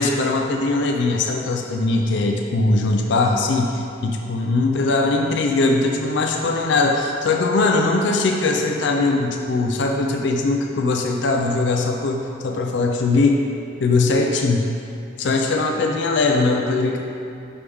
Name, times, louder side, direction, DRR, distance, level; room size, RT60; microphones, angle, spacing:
voice 1, 0.0-13.4 13.8-14.6 15.2-17.0, left 3 dB, 60° left, 2 dB, 0.4 m, -20 dB
7.0 x 4.8 x 3.4 m, 2.6 s
head